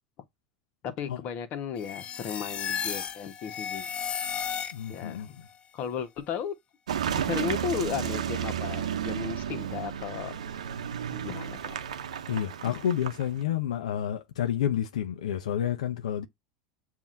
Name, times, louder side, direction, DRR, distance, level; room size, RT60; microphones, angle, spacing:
voice 1, 0.8-3.9 4.9-5.4 5.7-6.5 7.3-10.4 11.1-11.8 12.6-12.7, left 7 dB, 50° left, 1.3 m, -35 dB
sound 1, 1.8-5.1, left 7 dB, 35° left, 0.9 m, -34 dB
voice 2, 4.7-5.3 12.3-16.3, left 10 dB, 85° left, 0.7 m, -29 dB
Car passing by / Engine, 6.9-13.4, right 9 dB, 90° right, 0.7 m, -33 dB
7.2 x 2.8 x 2.6 m
hypercardioid pair, 95°, 3 cm